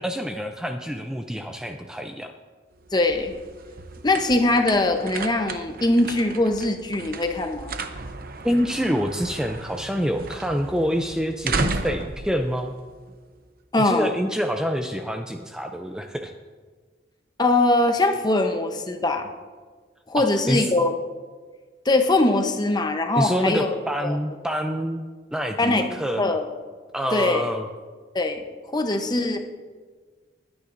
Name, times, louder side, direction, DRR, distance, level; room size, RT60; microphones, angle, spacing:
voice 1, 0.0-2.3 8.4-12.7 13.7-16.3 20.2-20.7 23.2-26.2 26.9-27.7, equal, 5° right, 4 dB, 0.4 m, -26 dB
sound 1, 2.8-13.5, right 3 dB, 55° right, 0.8 m, -34 dB
voice 2, 2.9-3.3 4.0-7.8 13.7-14.1 17.4-19.3 20.1-21.0 21.9-24.2 25.6-26.5 27.1-27.5 28.1-28.4 28.7-29.4, left 2 dB, 25° left, 5 dB, 0.8 m, -22 dB
21.5 x 9.6 x 2.6 m, 1.5 s
head